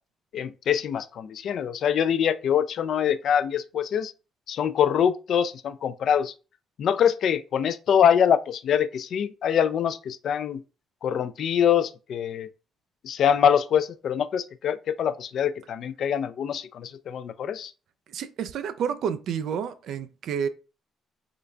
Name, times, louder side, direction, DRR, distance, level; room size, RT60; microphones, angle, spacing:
voice 1, 0.3-4.1 4.5-6.3 6.8-10.6 11.0-12.5 13.0-17.7, left 8 dB, 65° left, 0.3 m, -24 dB
voice 2, 18.1-20.5, right 7 dB, 75° right, 0.4 m, -30 dB
3.8 x 2.2 x 3.2 m
cardioid pair, 90°, 0 cm